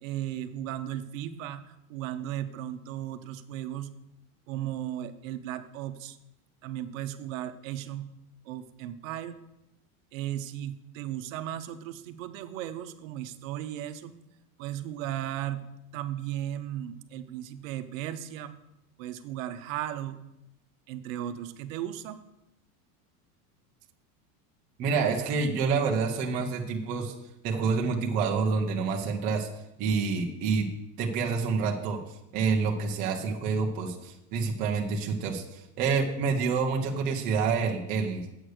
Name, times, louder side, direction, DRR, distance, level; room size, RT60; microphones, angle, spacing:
voice 1, 0.0-3.9 4.5-6.2 6.6-8.1 8.4-9.4 10.1-14.2 14.6-15.6 15.9-18.6 19.0-20.2 20.9-22.2, right 12 dB, 55° right, 10 dB, 0.8 m, -36 dB
voice 2, 24.8-27.1 27.4-29.5 29.8-30.7 31.0-32.0 32.3-38.2, right 5 dB, 20° right, 0 dB, 0.4 m, -28 dB
8.1 x 6.4 x 6.3 m, 0.88 s
supercardioid pair, 175°, 46 cm